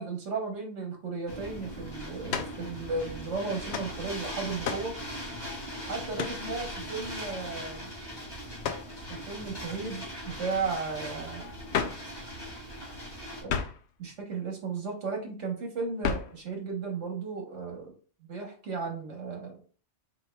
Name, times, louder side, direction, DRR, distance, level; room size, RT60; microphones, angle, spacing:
voice 1, 0.0-4.9 5.8-7.9 9.1-11.4 13.4-13.5 14.0-17.9 18.3-19.6, right 4 dB, 75° right, 2 dB, 1.5 m, -35 dB
sound 1, 1.3-13.4, equal, 25° left, 2.2 m, -40 dB
sound 2, 2.3-2.6 3.7-3.9 4.6-4.9 6.2-6.4 8.6-8.9 11.7-12.1 13.5-13.9 16.0-16.4, left 7 dB, 70° left, 0.8 m, -32 dB
4.7 x 4.5 x 2.3 m, 0.39 s
omnidirectional pair, 1.2 m